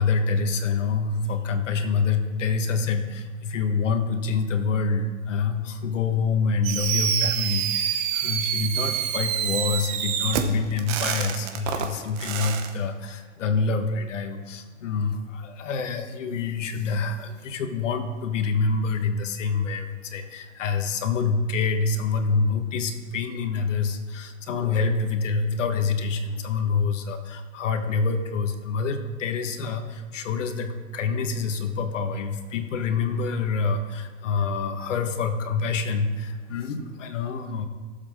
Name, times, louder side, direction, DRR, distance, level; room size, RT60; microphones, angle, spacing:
voice 1, 0.0-37.7, left 4 dB, 70° left, 6 dB, 1.5 m, -26 dB
Fireworks, 6.6-12.7, right 9 dB, 25° right, 0.8 m, -27 dB
17.5 x 7.4 x 3.7 m, 1.5 s
hypercardioid pair, 145°, 38 cm